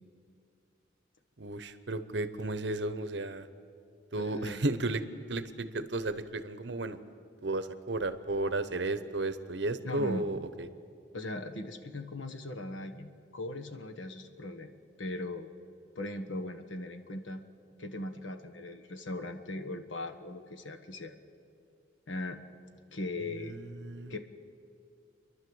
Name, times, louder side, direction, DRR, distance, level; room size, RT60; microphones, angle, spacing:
voice 1, 1.4-3.5 4.1-5.0 5.3-7.0 7.4-10.5 23.2-24.2, right 2 dB, 65° right, 12 dB, 0.9 m, -33 dB
voice 2, 4.2-4.6 9.8-10.3 11.1-14.7 15.0-15.5 15.9-17.4 17.8-21.1 22.1-22.4 22.9-23.6 24.1-24.2, left 2 dB, 80° left, 7 dB, 1.3 m, -39 dB
30.0 x 11.5 x 7.9 m, 2.5 s
head